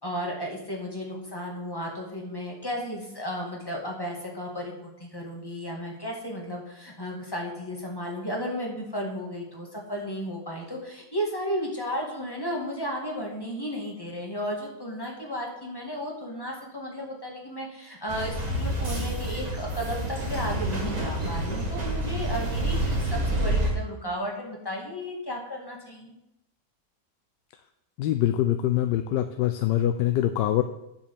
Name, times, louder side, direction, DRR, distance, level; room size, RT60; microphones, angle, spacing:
voice 1, 0.0-26.2, equal, 15° left, -1 dB, 1.9 m, -34 dB
sound 1, 18.1-23.7, right 1 dB, 25° right, 1.7 m, -28 dB
voice 2, 28.0-30.6, left 12 dB, 85° left, 8 dB, 1.2 m, -24 dB
9.5 x 5.2 x 7.0 m, 0.84 s
omnidirectional pair, 1.8 m